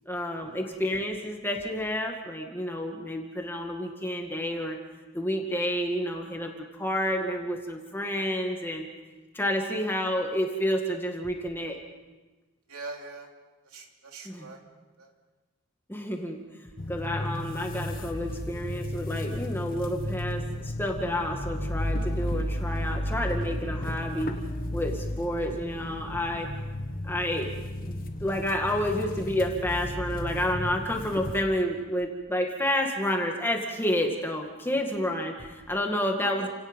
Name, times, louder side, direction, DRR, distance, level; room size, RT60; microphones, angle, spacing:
voice 1, 0.1-4.8 5.1-8.9 9.3-11.8 14.2-14.5 15.9-16.4 16.9-24.4 24.7-26.5 27.0-27.5 27.8-36.5, left 1 dB, 10° left, 2 dB, 2.1 m, -30 dB
voice 2, 12.7-13.3 13.7-14.6 15.0-15.1 36.2-36.5, right 3 dB, 85° right, 2 dB, 3.1 m, -42 dB
sound 1, 16.8-31.4, left 1 dB, 40° left, 1.3 m, -33 dB
30.0 x 18.0 x 5.4 m, 1.2 s
head